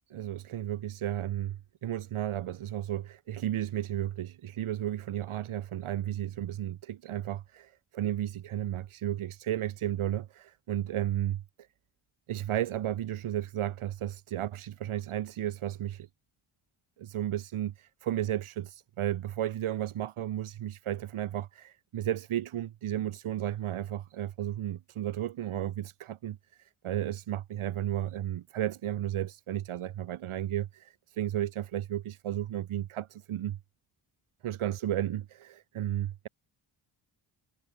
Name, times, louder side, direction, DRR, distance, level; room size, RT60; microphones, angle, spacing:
voice 1, 0.1-11.4 12.3-16.1 17.0-33.6 34.4-36.3, right 12 dB, 85° right, 3.1 m, -33 dB
cardioid pair, 80°, 49 cm